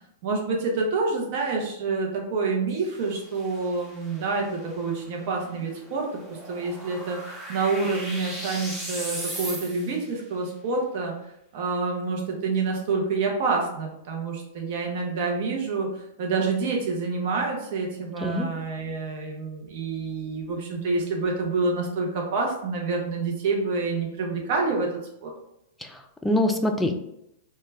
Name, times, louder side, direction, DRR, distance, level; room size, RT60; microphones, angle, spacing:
voice 1, 0.2-6.1 6.5-11.1 11.5-24.9 25.2-25.3, right 3 dB, 55° right, 0 dB, 0.6 m, -27 dB
sound 1, 2.7-10.1, right 1 dB, 10° right, 0.7 m, -39 dB
voice 2, 25.8-27.0, left 1 dB, 5° left, 4 dB, 0.3 m, -25 dB
2.2 x 2.0 x 3.3 m, 0.80 s
hypercardioid pair, 110°, 0 cm